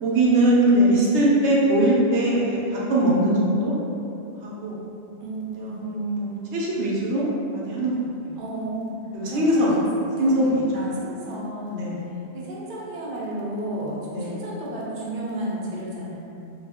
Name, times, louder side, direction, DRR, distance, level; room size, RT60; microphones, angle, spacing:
voice 1, 0.0-3.7 4.4-4.8 5.5-8.3 9.1-9.7 10.2-10.6 11.7-12.0 14.1-14.3, right 1 dB, 80° right, -6 dB, 0.9 m, -21 dB
voice 2, 5.2-5.8 8.4-8.9 9.3-9.8 10.2-10.4 10.7-11.8 12.1-16.2, right 1 dB, 55° right, -6 dB, 0.6 m, -32 dB
2.3 x 2.0 x 3.4 m, 2.7 s
omnidirectional pair, 1.2 m